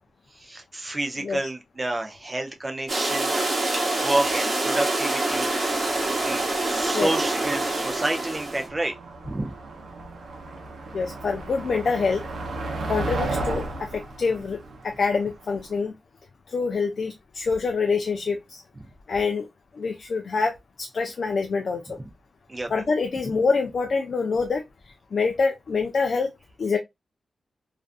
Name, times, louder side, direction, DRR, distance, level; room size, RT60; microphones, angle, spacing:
voice 1, 0.4-3.3 3.9-5.5 6.2-8.9 9.2-9.5 22.5-22.7, right 2 dB, 25° right, 0.4 m, -29 dB
sound 1, 2.9-8.7, right 2 dB, 45° right, 0.9 m, -26 dB
Motor vehicle (road), 5.4-15.7, right 2 dB, 80° right, 0.7 m, -35 dB
voice 2, 10.9-12.2 12.9-14.6 14.8-15.9 16.5-18.6 19.1-19.5 19.7-22.0 22.7-26.3 26.6-26.8, left 4 dB, 55° left, 0.3 m, -26 dB
2.4 x 2.3 x 2.3 m
wide cardioid pair, 130°, 0 cm